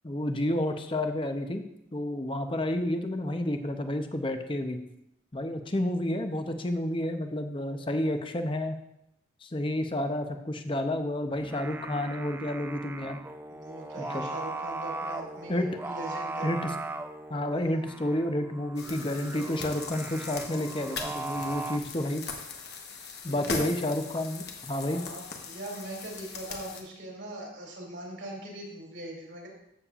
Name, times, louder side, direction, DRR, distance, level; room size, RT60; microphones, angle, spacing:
voice 1, 0.0-1.6 1.9-4.8 5.3-8.8 9.4-13.2 14.0-14.3 15.5-15.7 16.4-16.7 17.3-22.3 23.2-25.0, left 1 dB, 25° left, 6 dB, 0.6 m, -30 dB
Singing, 11.3-21.8, right 2 dB, 10° right, 0.3 m, -38 dB
voice 2, 13.5-16.5 17.4-17.9 23.2-23.7 24.8-29.5, right 1 dB, 75° right, -2 dB, 2.8 m, -41 dB
sound 1, 18.8-26.8, left 5 dB, 55° left, 1.1 m, -40 dB
14.0 x 7.2 x 2.4 m, 0.83 s
head